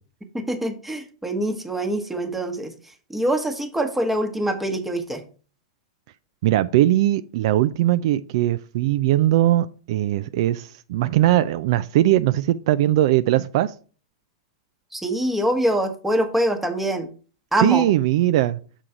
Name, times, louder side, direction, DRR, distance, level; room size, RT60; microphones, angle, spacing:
voice 1, 0.3-2.7 3.1-5.2 14.9-17.1 17.5-17.9, right 1 dB, 5° right, 1.1 m, -24 dB
voice 2, 6.4-13.7 17.6-18.6, right 14 dB, 60° right, 0.4 m, -20 dB
6.4 x 3.8 x 5.7 m
hypercardioid pair, 130°, 3 cm